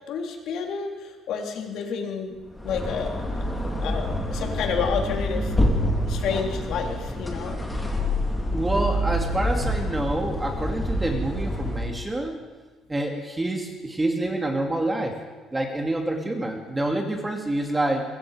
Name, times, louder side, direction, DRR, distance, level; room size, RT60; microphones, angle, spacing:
voice 1, 0.1-2.3 2.6-3.1 3.5-5.5 6.1-7.6, left 6 dB, 60° left, 2 dB, 3.4 m, -30 dB
sound 1, 2.5-12.0, equal, 5° left, 2.7 m, -27 dB
voice 2, 8.5-12.4 12.9-15.2 15.5-18.0, right 1 dB, 10° right, 2 dB, 2.4 m, -27 dB
24.5 x 21.5 x 5.0 m, 1.3 s
cardioid pair, 170°, 0 cm